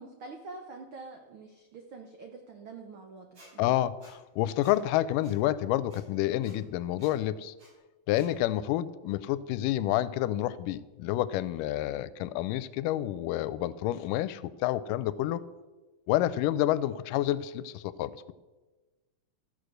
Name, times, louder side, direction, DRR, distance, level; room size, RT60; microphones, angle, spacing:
voice 1, 0.0-3.8, right 3 dB, 90° right, 3 dB, 1.1 m, -46 dB
Squeak, 3.3-3.5 4.0-4.1 4.6-4.8 5.2-5.3 5.9-6.0 6.4-6.5 7.0-7.1 7.6-7.7 8.1-8.3, right 1 dB, 40° right, 5.3 m, -54 dB
voice 2, 3.6-7.5 8.1-15.4 16.1-18.1, left 14 dB, 90° left, 16 dB, 2.2 m, -29 dB
13.5 x 6.4 x 6.4 m, 1.2 s
omnidirectional pair, 3.7 m